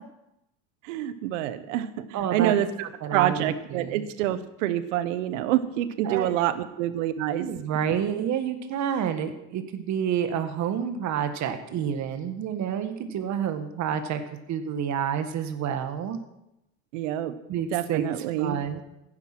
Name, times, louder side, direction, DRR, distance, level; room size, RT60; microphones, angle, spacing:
voice 1, 0.8-7.5 16.9-17.3 17.7-18.6, right 12 dB, 90° right, 13 dB, 1.2 m, -27 dB
voice 2, 2.1-2.5 3.0-4.1 6.0-6.4 7.4-14.2 14.5-16.2 17.5-18.8, right 8 dB, 50° right, 8 dB, 1.8 m, -29 dB
15.5 x 10.5 x 6.1 m, 0.89 s
supercardioid pair, 115°, 37 cm